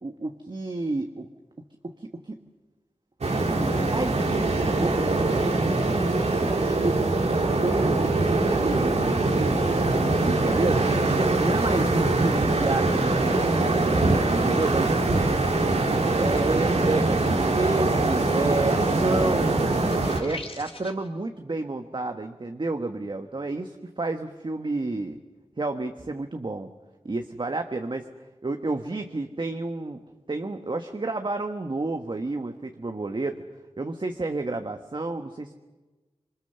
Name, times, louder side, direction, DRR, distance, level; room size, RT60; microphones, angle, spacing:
voice 1, 0.0-1.3 1.8-2.4 3.6-5.1 5.4-9.5 10.2-13.5 14.3-15.3 16.0-19.6 20.2-25.2 25.6-26.7 27.0-28.1 28.4-30.0 30.3-33.4 33.8-35.5, right 2 dB, 45° right, 6 dB, 1.4 m, -30 dB
sound 1, 3.2-20.2, right 2 dB, 85° right, 2.7 m, -23 dB
sound 2, 19.7-21.1, left 2 dB, 60° left, 3.5 m, -40 dB
26.5 x 23.5 x 6.8 m, 1.2 s
wide cardioid pair, 50°, 11 cm